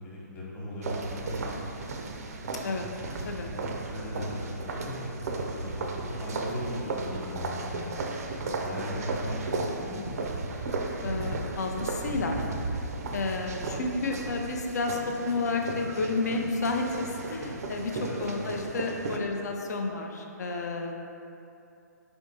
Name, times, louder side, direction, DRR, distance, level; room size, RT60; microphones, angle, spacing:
voice 1, 0.0-1.9 3.9-5.1 5.5-8.1 8.5-10.2 17.8-18.2, equal, 20° left, -8 dB, 0.9 m, -38 dB
sound 1, 0.8-19.2, right 3 dB, 55° right, 0.4 m, -35 dB
voice 2, 11.0-12.4 13.1-20.9, left 3 dB, 65° left, 2 dB, 0.5 m, -31 dB
4.4 x 3.5 x 2.7 m, 2.7 s
figure-of-eight pair, 130°, 10 cm